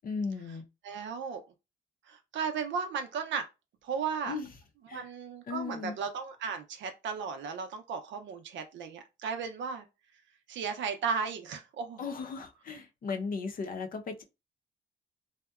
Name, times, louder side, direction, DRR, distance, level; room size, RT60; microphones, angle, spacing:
voice 1, 0.0-0.6 4.3-4.5 4.9-5.1 5.5-5.9 12.0-14.2, left 4 dB, 45° left, 0.6 m, -36 dB
voice 2, 0.8-1.4 2.1-3.5 3.8-4.4 4.9-9.9 10.5-12.0, right 6 dB, 70° right, 0.6 m, -35 dB
2.7 x 2.1 x 2.3 m
cardioid pair, 90°, 20 cm